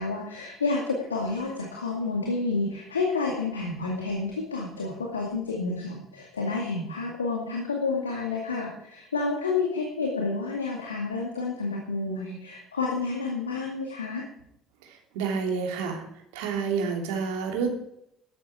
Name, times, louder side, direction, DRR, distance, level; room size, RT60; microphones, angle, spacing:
voice 1, 0.0-14.2, left 3 dB, 80° left, -1 dB, 2.2 m, -30 dB
voice 2, 14.8-16.0 16.3-17.7, right 5 dB, 65° right, 2 dB, 3.1 m, -29 dB
13.0 x 12.5 x 4.9 m, 0.77 s
figure-of-eight pair, 55°, 0 cm